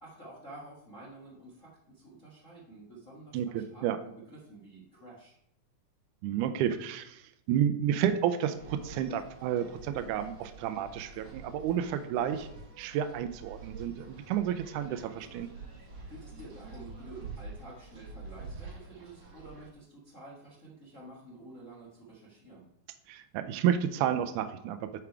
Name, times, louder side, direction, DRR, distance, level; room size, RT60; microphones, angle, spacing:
voice 1, 0.0-5.4 15.8-22.7, right 2 dB, 45° left, -5 dB, 0.9 m, -50 dB
voice 2, 3.3-4.0 6.2-12.5 12.8-15.5 23.1-25.0, right 9 dB, 85° right, 10 dB, 1.8 m, -31 dB
sound 1, 8.6-19.7, right 3 dB, 50° right, 5.2 m, -47 dB
9.6 x 4.9 x 4.6 m, 0.75 s
omnidirectional pair, 4.1 m